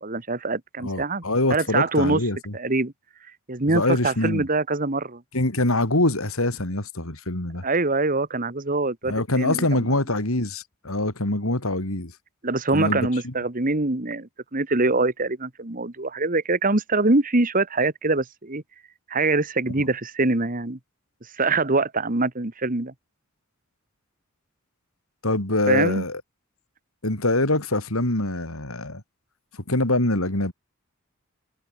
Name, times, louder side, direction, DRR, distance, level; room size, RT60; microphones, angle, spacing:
voice 1, 0.0-1.2 1.5-2.2 2.5-2.9 3.5-5.2 7.6-9.9 12.4-18.6 19.1-20.8 21.4-22.9 25.7-26.0, right 3 dB, 40° right, 1.6 m, -24 dB
voice 2, 0.8-2.5 3.7-4.5 5.3-7.6 9.0-12.1 12.7-13.3 25.2-26.2 27.0-29.0 29.7-30.5, left 2 dB, 75° left, 4.4 m, -24 dB
head